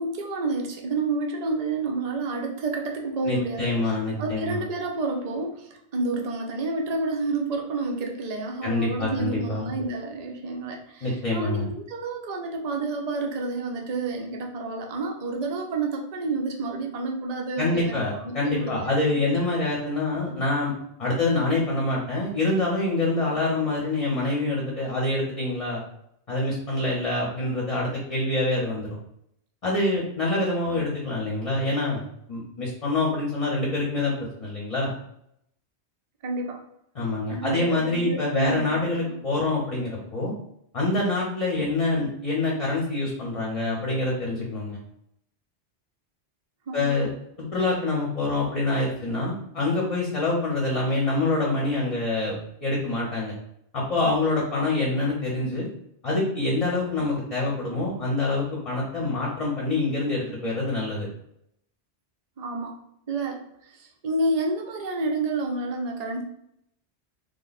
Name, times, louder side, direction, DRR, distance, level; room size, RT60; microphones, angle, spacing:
voice 1, 0.0-3.8 4.2-19.2 36.2-36.6 37.3-38.8 39.1-39.2 46.7-47.1 62.4-62.7 63.1-66.2, right 3 dB, 45° right, 2 dB, 0.6 m, -29 dB
voice 2, 3.2-4.6 8.6-9.7 11.0-11.7 17.6-20.7 21.0-25.8 26.3-29.0 29.6-32.0 32.3-34.1 34.4-34.9 36.9-40.3 40.7-44.8 46.7-47.1 47.4-53.3 53.7-55.7 56.0-61.1, left 2 dB, 35° left, -4 dB, 0.8 m, -26 dB
3.3 x 2.2 x 4.0 m, 0.74 s
omnidirectional pair, 1.2 m